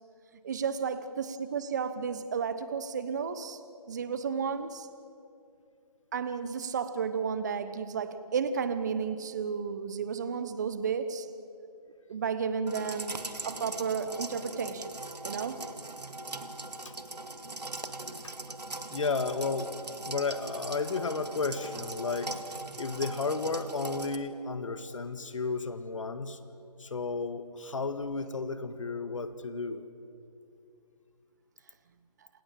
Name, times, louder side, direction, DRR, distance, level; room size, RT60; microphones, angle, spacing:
voice 1, 0.4-3.6 3.9-4.9 6.1-11.3 12.1-13.1 13.4-14.9 15.2-15.6, right 6 dB, 25° right, 12 dB, 1.0 m, -32 dB
sound 1, 12.7-24.2, right 2 dB, 90° right, 2.2 m, -40 dB
voice 2, 18.9-19.7 20.1-22.4 22.7-26.4 26.8-29.8, left 4 dB, 50° left, 10 dB, 1.6 m, -33 dB
28.0 x 27.5 x 7.5 m, 2.6 s
figure-of-eight pair, 165°, 20 cm